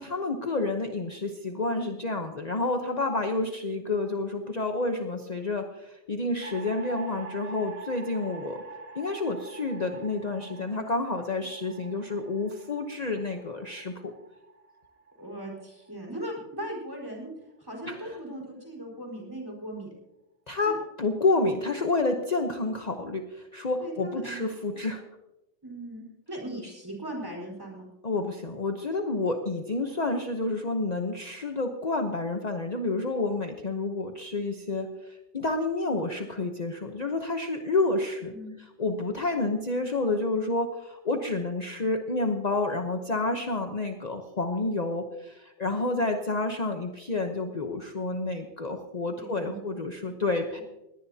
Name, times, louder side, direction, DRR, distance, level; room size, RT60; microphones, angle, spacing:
voice 1, 0.0-8.6 9.0-14.1 17.8-18.2 20.5-25.0 28.0-38.3 38.8-50.6, left 2 dB, 40° left, 4 dB, 1.0 m, -29 dB
sound 1, 6.4-16.7, right 3 dB, 55° right, 1.6 m, -46 dB
voice 2, 15.2-17.3 17.6-19.9 20.7-20.8 23.8-24.5 25.6-27.9 38.3-38.5 49.2-49.6, right 1 dB, 20° right, 0 dB, 4.5 m, -38 dB
20.5 x 18.0 x 2.8 m, 0.96 s
omnidirectional pair, 1.2 m